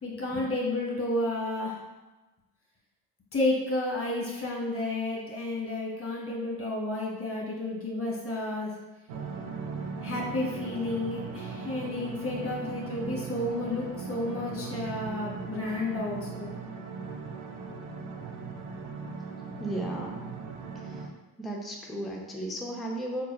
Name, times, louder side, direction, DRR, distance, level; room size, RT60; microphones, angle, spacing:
voice 1, 0.0-1.7 3.3-8.7 10.0-16.5, left 2 dB, 30° left, -3 dB, 1.3 m, -31 dB
sound 1, 9.1-21.1, right 5 dB, 75° right, 0.6 m, -38 dB
voice 2, 19.6-20.1 20.8-21.0 21.4-23.3, right 1 dB, ahead, -1 dB, 0.6 m, -34 dB
3.7 x 2.3 x 3.1 m, 1.1 s
hypercardioid pair, 45°, 47 cm